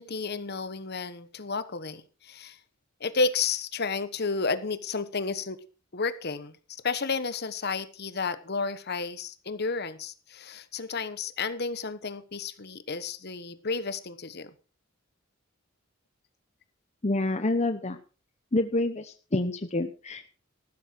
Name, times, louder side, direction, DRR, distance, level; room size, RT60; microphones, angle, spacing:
voice 1, 0.0-2.6 3.0-5.6 5.9-6.6 6.8-14.5, left 4 dB, 50° left, 13 dB, 1.2 m, -32 dB
voice 2, 17.0-18.0 18.5-20.3, left 2 dB, 35° left, 8 dB, 0.9 m, -27 dB
14.5 x 12.5 x 4.6 m, 0.35 s
head